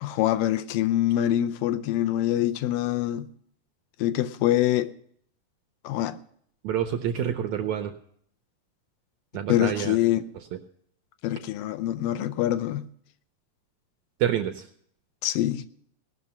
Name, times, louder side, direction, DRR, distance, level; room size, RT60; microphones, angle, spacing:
voice 1, 0.0-3.3 4.0-4.9 5.8-6.2 9.5-10.3 11.2-12.9 15.2-15.7, left 13 dB, 80° left, 2.3 m, -25 dB
voice 2, 6.6-7.9 9.3-10.0 14.2-14.6, right 10 dB, 75° right, 1.7 m, -27 dB
18.5 x 6.3 x 6.9 m
omnidirectional pair, 4.0 m